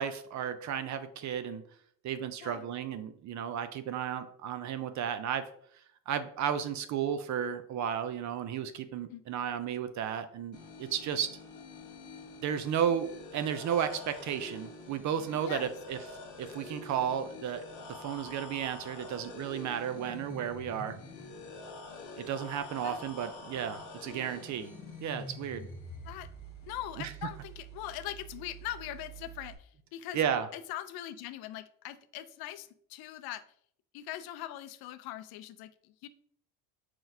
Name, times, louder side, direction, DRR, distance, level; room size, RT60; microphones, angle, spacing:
voice 1, 0.0-1.6 2.0-5.5 6.1-11.3 12.4-16.0 16.4-17.6 18.0-21.0 22.2-24.7 25.0-25.7 27.0-27.1 30.1-30.5, right 8 dB, 45° right, 10 dB, 0.5 m, -33 dB
sound 1, 10.5-29.6, left 1 dB, 45° left, 1.3 m, -46 dB
voice 2, 26.6-30.2 30.5-33.4 33.9-36.1, left 13 dB, 60° left, 13 dB, 0.5 m, -41 dB
4.6 x 3.8 x 2.7 m, 0.63 s
cardioid pair, 110°, 43 cm